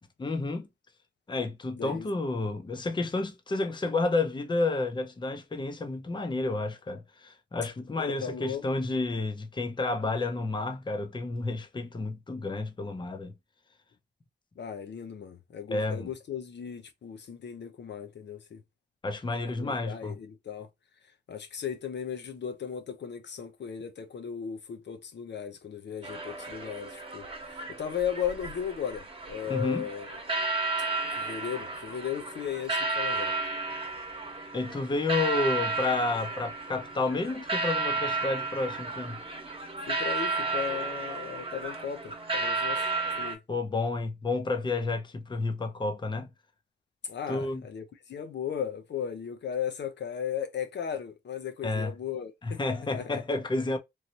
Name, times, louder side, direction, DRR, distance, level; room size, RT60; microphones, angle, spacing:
voice 1, 0.2-0.7 1.3-13.3 15.7-16.1 19.0-20.1 29.5-29.9 34.5-39.2 43.5-46.3 47.3-47.6 51.6-51.9 52.4-53.8, left 3 dB, 25° left, 0.6 m, -30 dB
voice 2, 1.8-2.1 8.0-8.7 14.6-18.6 19.5-20.7 21.3-27.3 27.7-30.2 31.1-33.3 39.9-42.9 43.2-43.4 47.0-52.6 52.9-53.2, left 8 dB, 75° left, 0.7 m, -36 dB
sound 1, 26.0-43.3, right 3 dB, 30° right, 1.0 m, -33 dB
3.1 x 2.7 x 2.8 m
wide cardioid pair, 95°, 18 cm